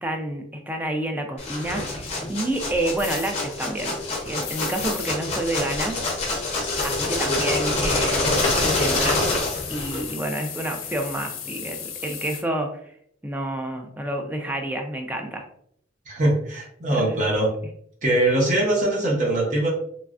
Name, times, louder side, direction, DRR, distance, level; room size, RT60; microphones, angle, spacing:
voice 1, 0.0-6.0 6.8-12.9 13.2-15.4 16.9-17.2, right 1 dB, 10° right, 3 dB, 0.3 m, -29 dB
sound 1, 1.4-10.1, left 2 dB, 30° left, 0.6 m, -26 dB
sound 2, 3.0-3.3 4.4-5.1 6.7-7.0 8.3-12.4, left 8 dB, 85° left, 0.5 m, -36 dB
voice 2, 16.1-17.5 18.0-19.7, right 1 dB, 40° right, -3 dB, 0.8 m, -22 dB
3.1 x 2.3 x 2.4 m, 0.67 s
head